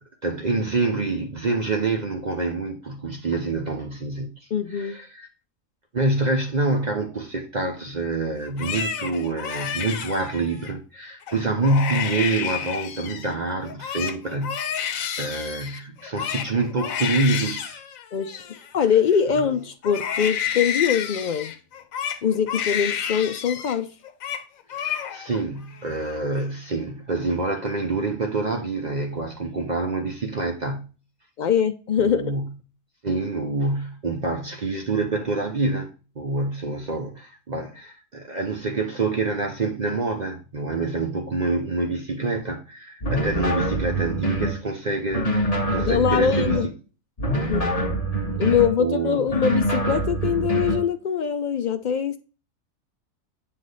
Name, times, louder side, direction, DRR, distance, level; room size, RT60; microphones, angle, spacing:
voice 1, 0.2-4.5 4.7-5.3 5.9-17.8 24.7-30.9 32.0-32.5 33.0-46.6 48.8-49.3, right 3 dB, 40° right, 0.7 m, -26 dB
voice 2, 4.5-5.0 18.1-18.5 18.7-21.5 22.2-23.9 31.4-32.2 45.8-46.7 47.4-47.7 48.4-52.2, left 7 dB, 70° left, 0.4 m, -23 dB
Crying sobbing, 8.4-10.7 11.2-11.4 11.6-13.3 13.6-19.4 19.8-23.8 24.0-24.4 24.7-25.4 25.8-26.4, left 8 dB, 90° left, 1.1 m, -30 dB
sound 1, 43.0-44.6 45.1-46.7 47.2-48.8 49.3-50.9, right 1 dB, 30° left, 1.3 m, -25 dB
7.6 x 3.3 x 3.9 m
omnidirectional pair, 1.4 m